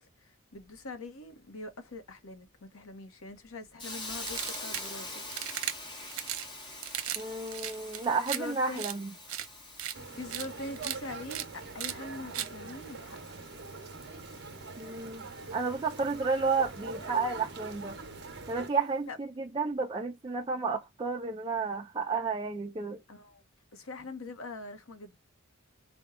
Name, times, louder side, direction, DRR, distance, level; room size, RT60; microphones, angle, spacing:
voice 1, 0.0-5.2 8.3-9.1 10.1-13.2 19.1-19.2 23.1-23.4 23.7-25.2, left 3 dB, 75° left, 0.9 m, -43 dB
Hiss, 3.8-18.6, left 2 dB, 20° left, 1.0 m, -46 dB
sound 1, 4.2-4.9 5.3-5.7 6.1-6.5 6.8-7.2 7.5-8.4 8.8-8.9 9.3-9.5 9.8-9.9 10.3-10.5 10.8-11.0 11.3-11.4 11.8-11.9 12.3-12.5, right 11 dB, 85° right, 0.7 m, -35 dB
voice 2, 7.2-9.1 14.8-18.0 18.5-23.0, right 4 dB, 20° right, 0.4 m, -32 dB
sound 2, 9.9-18.7, right 4 dB, 50° right, 0.8 m, -44 dB
4.3 x 2.2 x 3.6 m
head